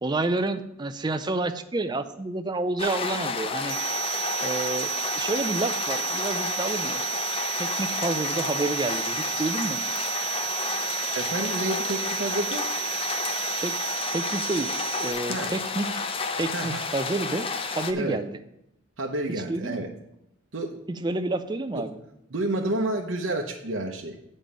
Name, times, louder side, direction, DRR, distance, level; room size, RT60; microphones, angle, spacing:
voice 1, 0.0-3.8 4.4-7.0 7.6-9.8 13.6-13.8 14.1-14.7 15.0-16.0 16.4-17.5 17.7-18.3 19.5-19.9 21.0-22.0, right 2 dB, 20° right, 9 dB, 0.5 m, -29 dB
sound 1, 2.8-17.9, left 4 dB, 25° left, 0.5 m, -31 dB
sound 2, 3.7-15.1, right 18 dB, 45° right, 1.3 m, -32 dB
voice 2, 11.1-12.7 15.3-15.5 16.5-16.8 17.9-18.2 19.0-19.9 20.5-20.8 21.7-21.8 22.3-24.2, right 1 dB, 65° right, 0 dB, 0.9 m, -29 dB
7.1 x 5.4 x 7.3 m, 0.82 s
head